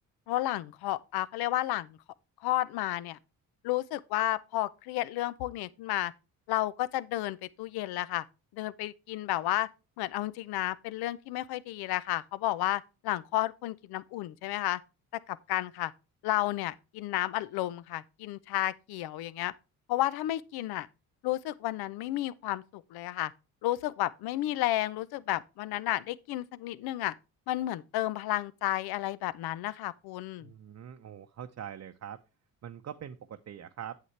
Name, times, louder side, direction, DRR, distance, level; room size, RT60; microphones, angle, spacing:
voice 1, 0.3-2.0 2.4-3.2 3.6-6.1 6.5-8.2 8.5-9.7 10.0-14.8 15.3-15.9 16.2-19.5 19.9-20.9 21.2-23.3 23.6-27.1 27.5-30.5, left 15 dB, 85° left, 0.6 m, -32 dB
voice 2, 30.4-32.2 32.6-34.0, right 9 dB, 45° right, 0.6 m, -43 dB
8.2 x 7.5 x 3.2 m
supercardioid pair, 70°, 37 cm